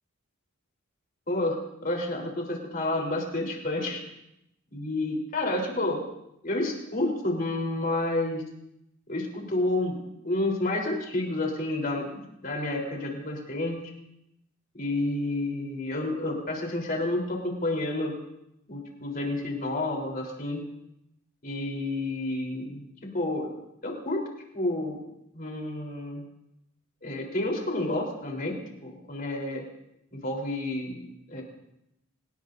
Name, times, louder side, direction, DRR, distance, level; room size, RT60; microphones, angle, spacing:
voice 1, 1.3-4.0 4.7-6.0 6.4-8.4 9.1-13.8 14.7-18.1 18.7-20.6 21.4-22.8 23.1-23.6 23.8-24.2 24.5-25.0 25.3-26.2 27.0-29.6 30.1-31.4, left 2 dB, 40° left, 0 dB, 4.0 m, -30 dB
28.0 x 18.5 x 2.7 m, 0.84 s
head